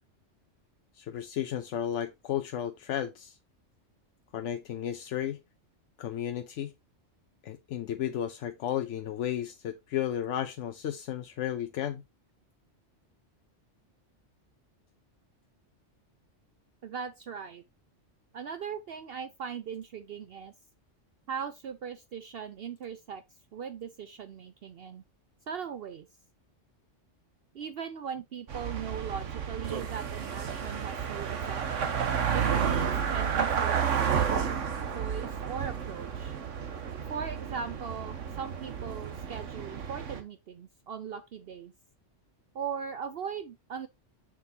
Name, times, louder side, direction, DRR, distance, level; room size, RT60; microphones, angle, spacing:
voice 1, 1.0-3.4 4.3-5.4 6.0-6.7 7.4-12.0, left 10 dB, 80° left, 1.0 m, -33 dB
voice 2, 16.8-17.6 18.3-20.5 21.3-23.2 23.5-25.0 25.5-26.1 27.5-31.7 32.3-34.6 34.9-36.4 37.1-41.7 42.5-43.9, right 7 dB, 60° right, 0.8 m, -39 dB
sound 1, 28.5-40.2, right 7 dB, 85° right, 1.4 m, -31 dB
7.2 x 6.2 x 2.8 m
omnidirectional pair, 1.2 m